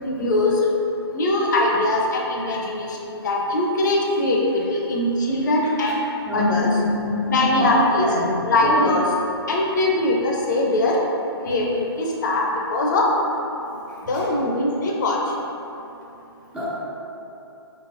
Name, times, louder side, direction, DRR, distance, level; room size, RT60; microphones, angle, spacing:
voice 1, 0.0-0.7 1.1-6.0 6.3-6.7 7.3-8.1 8.5-9.1 9.5-11.0 11.4-12.4 12.7-13.1 14.1-15.2, left 2 dB, 45° left, -2 dB, 0.5 m, -21 dB
voice 2, 6.3-7.7 8.0-8.9 16.5-16.8, left 1 dB, 5° right, -10 dB, 0.4 m, -24 dB
4.0 x 3.2 x 2.4 m, 2.9 s
figure-of-eight pair, 140°, 14 cm